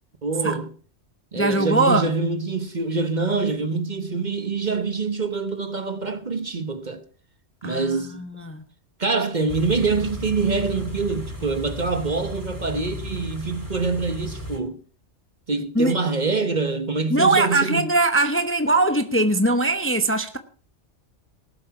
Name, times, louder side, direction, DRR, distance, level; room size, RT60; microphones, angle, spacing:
voice 1, 0.2-0.7 1.3-7.0 7.6-8.2 9.0-14.8 15.5-17.9, right 4 dB, 40° right, 1.2 m, -25 dB
voice 2, 1.4-2.1 7.6-8.6 15.8-15.9 17.1-20.4, right 2 dB, 10° left, 0.8 m, -21 dB
Car / Idling, 9.5-14.6, equal, 15° right, 2.5 m, -34 dB
18.5 x 7.8 x 5.8 m
omnidirectional pair, 1.2 m